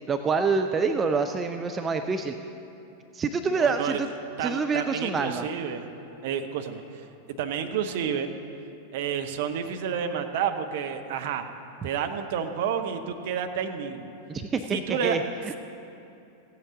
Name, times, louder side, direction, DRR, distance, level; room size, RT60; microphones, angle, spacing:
voice 1, 0.1-2.3 3.1-4.1 4.4-5.5 11.8-11.9 14.3-15.2, right 4 dB, 20° right, 7 dB, 0.4 m, -26 dB
voice 2, 3.6-4.0 4.4-5.9 6.2-7.1 7.4-8.3 8.9-11.5 11.8-14.1 14.7-15.2, right 7 dB, 50° right, 7 dB, 0.7 m, -30 dB
15.5 x 8.7 x 3.8 m, 2.8 s
figure-of-eight pair, 90°, 0 cm